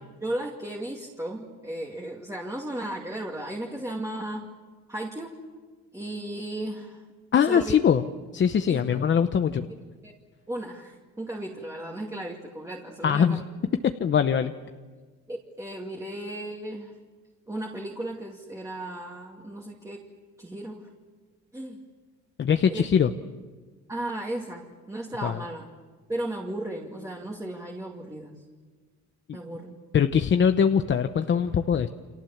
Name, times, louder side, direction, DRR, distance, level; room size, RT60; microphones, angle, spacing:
voice 1, 0.2-4.5 4.9-5.4 5.9-7.0 7.4-7.8 8.7-9.0 10.0-10.1 10.5-13.4 15.3-17.0 17.5-20.0 20.4-20.9 21.5-21.8 22.6-22.8 23.9-25.6 26.1-28.4 29.3-29.8, right 1 dB, 10° right, -1 dB, 2.5 m, -35 dB
voice 2, 7.3-8.0 8.3-9.7 13.0-13.4 13.8-14.5 22.4-23.1 25.2-25.4 29.9-31.9, left 7 dB, 35° left, 8 dB, 0.9 m, -22 dB
30.0 x 26.5 x 7.3 m, 1.4 s
cardioid pair, 130°, 32 cm